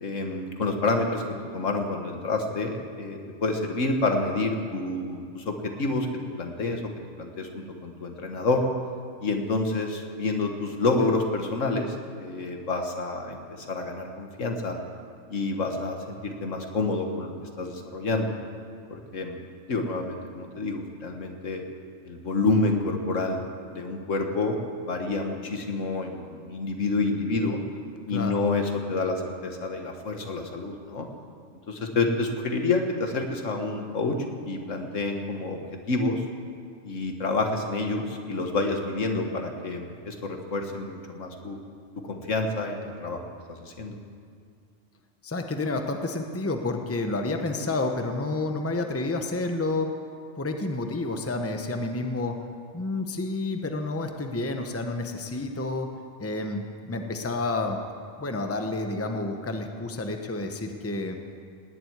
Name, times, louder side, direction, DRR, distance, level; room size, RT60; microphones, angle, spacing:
voice 1, 0.0-1.2 1.5-6.1 6.4-6.8 7.2-8.7 9.2-14.8 15.3-18.3 18.9-19.4 19.7-21.6 22.0-23.4 23.7-27.6 28.1-31.1 31.7-34.2 34.5-35.6 35.9-36.2 36.8-41.6 42.0-43.2 43.5-44.0, left 3 dB, 75° left, 4 dB, 1.8 m, -28 dB
voice 2, 45.2-49.9 50.4-52.4 52.7-55.9 56.2-57.8 58.2-61.2, left 2 dB, 10° left, 5 dB, 0.9 m, -29 dB
18.5 x 7.8 x 9.4 m, 2.2 s
omnidirectional pair, 1.3 m